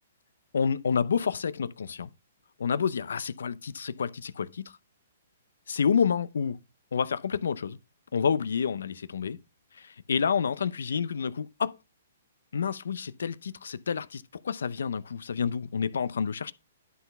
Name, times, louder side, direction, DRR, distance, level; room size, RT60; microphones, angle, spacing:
voice 1, 0.5-2.1 2.6-4.8 5.7-6.6 6.9-7.8 8.1-9.4 9.7-11.8 12.5-16.5, left 6 dB, 80° left, 0.7 m, -29 dB
11.5 x 4.1 x 5.4 m
hypercardioid pair, 140°, 0 cm